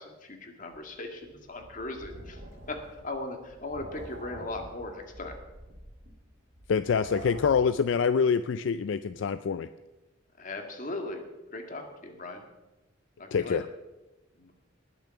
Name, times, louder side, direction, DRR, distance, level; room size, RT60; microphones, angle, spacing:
voice 1, 0.0-2.4 2.7-5.4 10.4-11.2 11.5-12.4 13.2-13.6 14.4-14.5, left 2 dB, 40° left, 4 dB, 1.9 m, -38 dB
sound 1, 0.7-7.8, right 1 dB, 60° right, 2.7 m, -46 dB
voice 2, 6.7-9.7 13.3-13.6, left 6 dB, 70° left, 12 dB, 0.4 m, -26 dB
20.0 x 7.0 x 5.8 m, 1.1 s
head